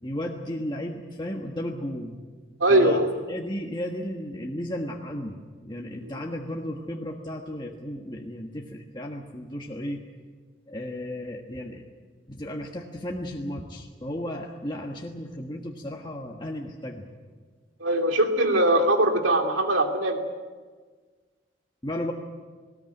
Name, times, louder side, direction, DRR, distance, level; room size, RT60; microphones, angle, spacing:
voice 1, 0.0-2.2 2.7-10.0 10.7-11.8 12.3-17.1 21.8-22.1, left 1 dB, 25° left, 0 dB, 1.4 m, -34 dB
voice 2, 2.6-3.1 6.0-6.1 17.8-20.2, right 1 dB, 85° right, 4 dB, 2.8 m, -21 dB
20.0 x 18.5 x 9.2 m, 1.5 s
head